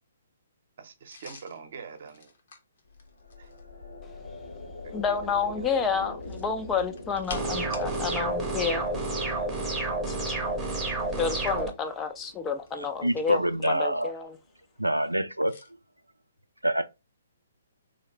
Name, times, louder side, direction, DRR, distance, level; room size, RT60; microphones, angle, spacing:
voice 1, 0.8-2.3 3.4-3.5 4.8-5.7, right 6 dB, 50° right, 0.7 m, -45 dB
sound 1, 1.1-3.7 6.1-8.3 8.6-8.7 11.0-11.7 12.4-13.6 15.5-15.7, left 4 dB, 50° left, 0.9 m, -48 dB
sound 2, 2.9-14.3, left 2 dB, 70° left, 1.5 m, -45 dB
voice 2, 4.9-8.9 10.1-10.2 11.1-14.4, left 6 dB, 15° left, 0.4 m, -30 dB
sound 3, 7.3-11.7, right 2 dB, 10° right, 0.8 m, -30 dB
voice 3, 12.8-14.1 14.8-15.6 16.6-16.8, right 1 dB, 90° right, 0.3 m, -26 dB
3.1 x 2.9 x 2.9 m
figure-of-eight pair, 125°, 0 cm